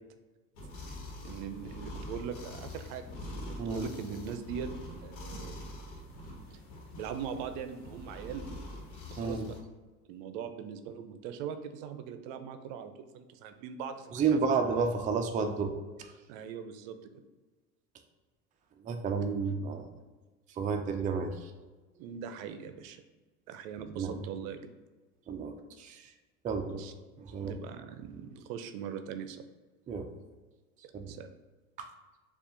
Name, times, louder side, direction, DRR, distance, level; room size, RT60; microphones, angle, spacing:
sound 1, 0.5-9.6, left 1 dB, 70° left, 1.2 m, -44 dB
voice 1, 1.2-4.7 5.0-5.5 6.5-6.6 6.9-8.4 9.1-9.6 10.1-14.4 16.3-17.1 22.0-23.0 23.5-24.7 26.8-26.9 27.4-29.4 30.8-31.3, right 7 dB, 65° right, 9 dB, 0.6 m, -41 dB
voice 2, 14.1-15.7 18.8-19.9 20.6-21.3 24.0-24.2 25.3-25.5 25.8-26.0 26.4-26.8 27.3-27.6 29.9-30.1 30.9-31.1 31.8-31.9, right 5 dB, 20° right, 5 dB, 0.4 m, -31 dB
6.6 x 2.4 x 2.6 m, 1.3 s
hypercardioid pair, 75°, 43 cm